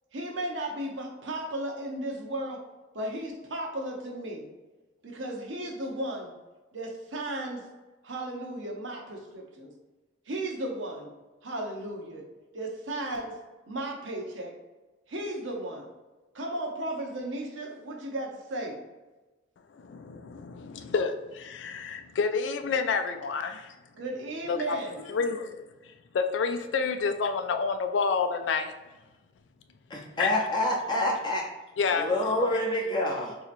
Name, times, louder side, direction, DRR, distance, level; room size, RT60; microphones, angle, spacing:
voice 1, 0.1-2.6 2.9-4.5 5.0-6.3 6.7-7.6 8.0-9.7 10.3-11.1 11.4-12.2 12.5-13.3 13.7-14.5 15.1-15.9 16.3-18.8 24.0-25.0, right 1 dB, 80° right, 1 dB, 0.7 m, -35 dB
voice 2, 19.8-23.8 24.5-24.8 25.1-25.6 26.1-28.7 30.2-30.4 31.8-32.1, left 5 dB, 70° left, 8 dB, 0.4 m, -29 dB
voice 3, 29.9-31.5 32.0-33.3, left 1 dB, 25° left, -3 dB, 0.6 m, -27 dB
4.2 x 2.8 x 2.5 m, 1.1 s
head